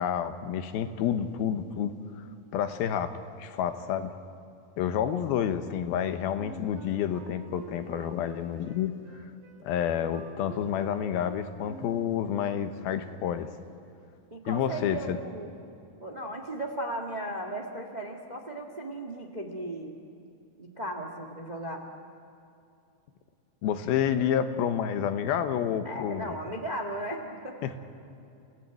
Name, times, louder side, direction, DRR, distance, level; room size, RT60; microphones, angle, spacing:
voice 1, 0.0-2.0 2.5-4.1 4.8-9.0 9.6-13.7 14.5-15.2 23.6-26.4 27.6-27.8, left 9 dB, 85° left, 9 dB, 2.9 m, -29 dB
Wind instrument woodwind instrument, 6.3-12.2, right 5 dB, 70° right, 3.8 m, -47 dB
voice 2, 14.3-15.5 16.0-20.0 20.6-21.9 25.8-27.8, right 1 dB, 50° right, 2 dB, 0.5 m, -36 dB
28.5 x 16.0 x 9.2 m, 2.7 s
omnidirectional pair, 4.2 m